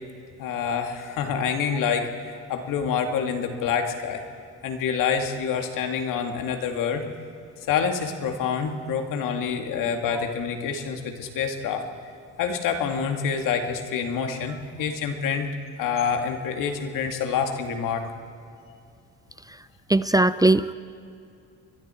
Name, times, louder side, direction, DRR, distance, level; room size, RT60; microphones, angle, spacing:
voice 1, 0.4-4.2 4.6-7.0 7.7-11.8 12.4-15.5 15.8-18.1, left 6 dB, 80° left, 5 dB, 2.3 m, -27 dB
voice 2, 19.9-20.7, right 2 dB, 10° right, 14 dB, 0.5 m, -19 dB
30.0 x 23.0 x 4.5 m, 2.5 s
cardioid pair, 90°, 32 cm